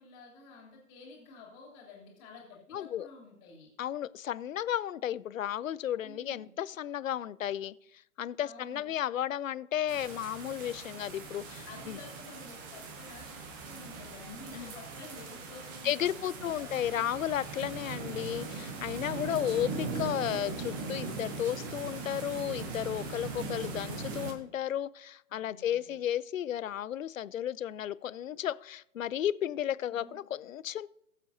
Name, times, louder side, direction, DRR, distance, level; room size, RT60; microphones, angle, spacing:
voice 1, 0.0-3.7 6.0-6.5 8.4-8.9 11.7-16.7 19.0-19.6 23.2-23.7 25.3-26.0 29.9-30.2, left 4 dB, 25° left, -1 dB, 2.8 m, -51 dB
voice 2, 2.7-3.1 3.8-7.7 8.2-12.0 14.5-14.7 15.8-30.9, left 11 dB, 60° left, 19 dB, 0.5 m, -33 dB
sound 1, 9.9-24.3, right 4 dB, 15° right, 0.7 m, -40 dB
20.5 x 7.4 x 2.7 m, 0.77 s
figure-of-eight pair, 135°, 44 cm